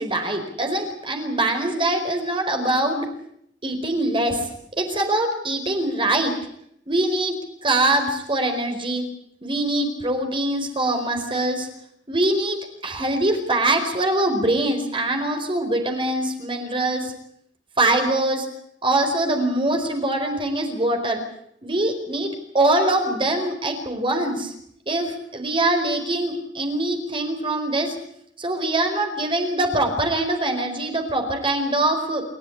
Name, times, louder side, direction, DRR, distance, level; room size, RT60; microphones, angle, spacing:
voice 1, 0.0-3.1 3.6-6.3 6.9-7.4 7.6-9.0 9.4-11.7 12.1-17.1 17.8-18.5 18.8-21.2 21.6-24.5 24.9-28.0 28.4-32.2, right 1 dB, 30° right, 4 dB, 4.6 m, -23 dB
28.5 x 13.5 x 9.9 m, 0.72 s
head